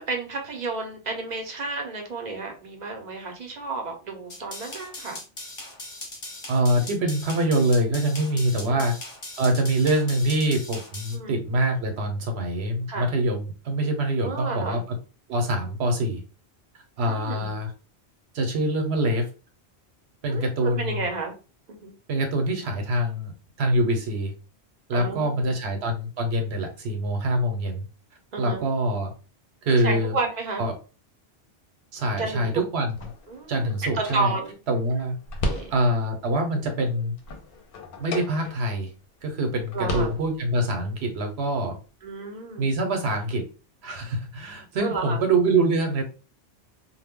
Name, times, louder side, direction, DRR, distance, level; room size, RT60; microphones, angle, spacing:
voice 1, 0.0-5.2 11.1-11.4 12.9-13.1 14.2-14.8 17.1-17.5 20.3-21.3 21.7-21.9 24.9-25.5 28.3-28.6 29.8-30.6 32.2-32.6 33.3-34.6 35.4-35.7 39.7-40.2 42.0-42.7 44.8-45.2, right 3 dB, 50° right, 2 dB, 0.6 m, -31 dB
sound 1, 4.3-11.1, left 2 dB, 35° left, 0.8 m, -39 dB
voice 2, 6.5-8.9 9.4-15.0 15.3-16.2 17.0-17.7 18.3-19.3 20.2-21.0 22.1-24.3 24.9-27.8 28.4-29.1 29.6-30.1 30.6-30.8 31.9-33.0 33.5-34.3 34.7-35.2 35.7-37.1 38.0-38.9 39.2-41.8 42.6-43.4 43.8-46.0, right 1 dB, 75° right, 4 dB, 0.9 m, -25 dB
sound 2, 32.9-36.2 36.6-38.9 39.2-39.3 39.6-40.7, left 2 dB, 65° left, 0.7 m, -35 dB
2.1 x 2.0 x 3.5 m, 0.34 s
omnidirectional pair, 1.1 m